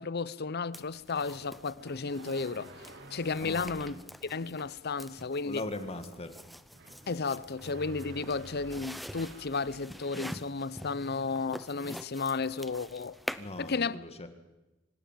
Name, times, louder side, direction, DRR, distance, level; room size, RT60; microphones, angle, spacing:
voice 1, 0.0-2.7 3.1-3.9 4.2-5.6 7.1-13.2 13.6-14.0, left 4 dB, 55° left, 0.7 m, -33 dB
sound 1, 0.7-13.7, equal, ahead, 0.7 m, -46 dB
sound 2, 1.8-4.1 6.7-9.9, right 1 dB, 60° right, 2.5 m, -49 dB
voice 2, 3.4-4.1 5.4-6.4 13.4-14.3, left 2 dB, 30° left, 2.0 m, -40 dB
25.0 x 16.0 x 9.2 m
head